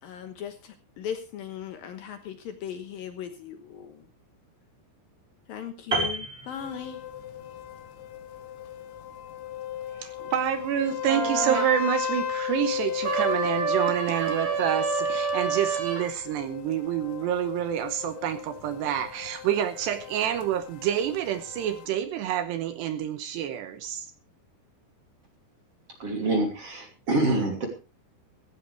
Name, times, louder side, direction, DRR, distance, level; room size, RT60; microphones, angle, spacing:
voice 1, 0.0-4.1 5.5-7.0, left 8 dB, 65° left, 8 dB, 2.4 m, -38 dB
Piano, 5.9-7.3 7.6-7.9, right 2 dB, 15° right, 4.0 m, -31 dB
sound 1, 6.6-21.9, left 9 dB, 80° left, 3.5 m, -36 dB
voice 2, 10.0-24.1, right 10 dB, 75° right, 10 dB, 2.9 m, -28 dB
sound 2, 11.1-11.7 13.0-16.1, right 6 dB, 55° right, 5.2 m, -28 dB
voice 3, 26.0-27.7, right 2 dB, 35° right, 3 dB, 3.3 m, -26 dB
16.0 x 15.5 x 3.4 m, 0.31 s
omnidirectional pair, 5.5 m